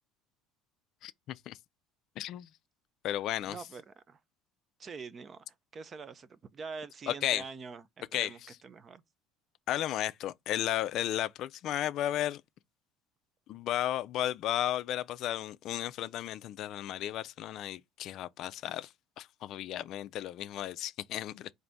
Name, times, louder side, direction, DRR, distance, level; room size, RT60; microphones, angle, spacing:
voice 1, 1.0-1.6 2.2-2.5 3.0-3.6 7.1-7.4 8.1-8.5 9.7-12.4 13.5-18.9 19.2-21.5, left 12 dB, 55° left, 0.3 m, -34 dB
voice 2, 3.4-4.2 4.8-5.4 5.7-9.0, right 5 dB, 30° right, 0.4 m, -45 dB
3.8 x 2.6 x 3.4 m
cardioid pair, 125°, 0 cm